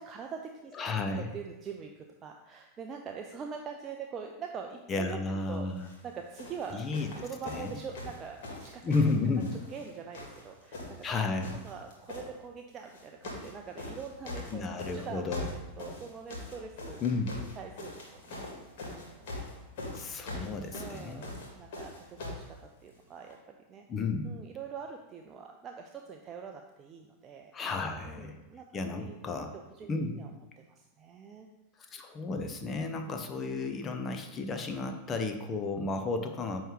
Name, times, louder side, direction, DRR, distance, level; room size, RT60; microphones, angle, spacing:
voice 1, 0.0-0.7 1.1-5.2 5.5-8.8 9.5-11.1 11.5-15.3 15.8-17.0 17.5-18.4 18.8-19.3 20.3-20.5 20.7-23.8 24.2-27.5 28.0-29.4 29.7-30.3 30.7-31.5 32.9-33.1, right 6 dB, 25° right, 2 dB, 0.5 m, -44 dB
voice 2, 0.7-1.3 4.9-5.8 6.7-7.1 7.5-7.8 8.8-9.6 11.0-11.6 14.5-15.4 17.0-17.4 19.9-21.2 23.9-24.3 27.5-28.4 28.7-29.5 29.9-30.2 31.8-36.6, left 3 dB, 25° left, 6 dB, 0.7 m, -32 dB
sound 1, 5.7-6.0 6.4-9.9 10.1-11.1 11.4-12.3 12.9-13.5 13.8-22.5 23.3-23.4, left 2 dB, 50° left, 2.0 m, -42 dB
8.8 x 3.2 x 4.9 m, 1.0 s
figure-of-eight pair, 90°, 0 cm